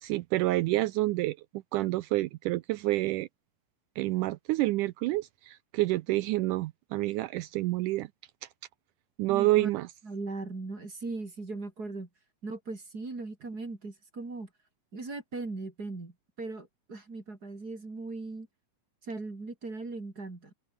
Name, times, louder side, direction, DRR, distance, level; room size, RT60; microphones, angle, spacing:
voice 1, 0.0-1.4 1.7-3.3 4.0-8.1 9.2-9.9, right 18 dB, 85° right, 1.9 m, -28 dB
voice 2, 9.3-9.7 10.0-12.1 12.4-14.5 14.9-18.5 19.0-20.5, right 3 dB, 25° right, 4.0 m, -39 dB
open air
omnidirectional pair, 4.3 m